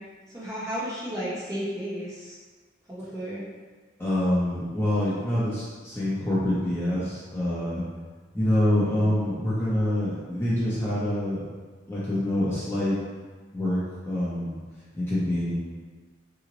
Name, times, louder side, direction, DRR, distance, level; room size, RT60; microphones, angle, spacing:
voice 1, 0.3-2.4 2.9-3.4 8.8-9.2, equal, 15° right, -8 dB, 0.8 m, -33 dB
voice 2, 4.0-7.8 8.3-11.5 11.9-13.0 13.5-13.8 14.1-14.6 14.9-15.5, left 1 dB, 10° left, -10 dB, 0.6 m, -26 dB
2.9 x 2.1 x 3.8 m, 1.4 s
head